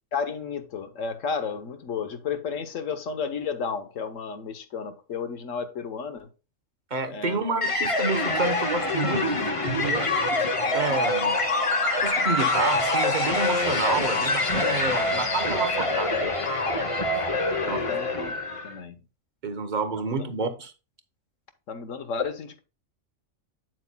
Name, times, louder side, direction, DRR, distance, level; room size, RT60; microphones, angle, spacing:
voice 1, 0.1-6.3 7.1-7.4 17.5-19.0 21.7-22.6, left 6 dB, 75° left, 1.4 m, -32 dB
voice 2, 6.9-10.4 10.7-11.4 12.0-16.3 17.6-17.9 19.4-20.7, right 3 dB, 40° right, 1.2 m, -29 dB
sound 1, 7.6-18.8, left 2 dB, 25° left, 1.0 m, -25 dB
9.0 x 7.7 x 2.3 m
omnidirectional pair, 1.3 m